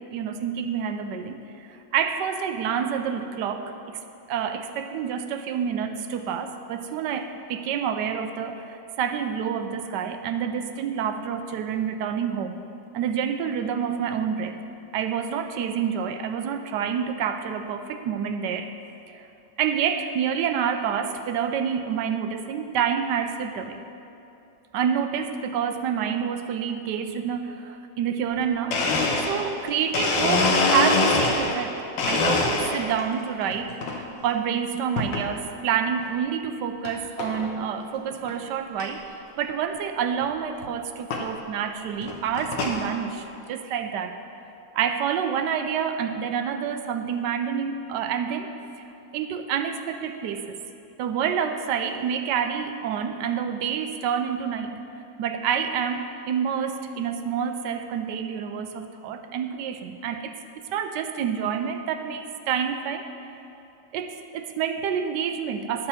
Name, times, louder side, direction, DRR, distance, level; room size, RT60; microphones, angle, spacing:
voice 1, 0.1-4.0 4.3-12.6 12.9-14.6 14.9-18.7 19.1-19.3 19.6-23.8 24.7-28.8 29.2-44.2 44.7-48.5 49.1-50.6 51.0-54.8 55.2-60.4 60.7-63.1 63.9-65.9, right 7 dB, 75° right, 8 dB, 1.1 m, -28 dB
Domestic sounds home sounds, 28.4-28.5 28.7-31.6 32.0-33.0 33.5-34.0 35.0-35.3 35.9-36.0 36.8-36.9 37.2-37.5 38.0-38.1 38.2-38.3 38.8-38.9 40.2-40.3 41.1-41.3 41.9-42.8, left 3 dB, 90° left, 1.7 m, -24 dB
10.5 x 4.5 x 6.8 m, 2.8 s
omnidirectional pair, 2.0 m